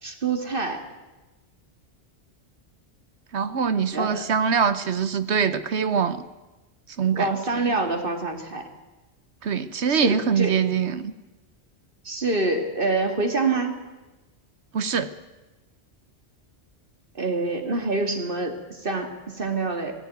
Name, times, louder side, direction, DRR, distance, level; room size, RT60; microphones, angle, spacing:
voice 1, 0.0-0.8 3.9-4.3 7.1-8.6 9.9-10.6 12.0-13.8 17.2-18.6 18.8-19.9, right 3 dB, 50° right, 5 dB, 2.6 m, -26 dB
voice 2, 3.3-6.2 7.0-7.3 7.6-7.8 9.4-11.1 14.7-15.1, right 6 dB, 70° right, 12 dB, 1.2 m, -23 dB
18.0 x 16.0 x 9.3 m, 1.1 s
omnidirectional pair, 1.2 m